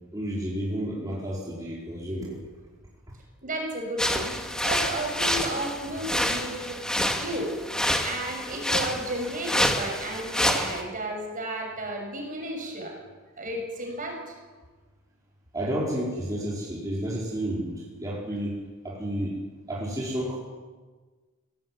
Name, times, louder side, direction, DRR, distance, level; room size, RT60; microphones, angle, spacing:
voice 1, 0.1-2.4 15.5-18.5 18.8-19.3 19.7-20.4, right 1 dB, 15° right, -5 dB, 5.0 m, -31 dB
voice 2, 3.4-6.8 7.2-7.5 8.0-12.9 13.4-14.4, right 1 dB, 40° right, 2 dB, 6.7 m, -33 dB
sound 1, 4.0-10.8, equal, 5° left, 2.1 m, -28 dB
23.5 x 17.5 x 9.4 m, 1.4 s
head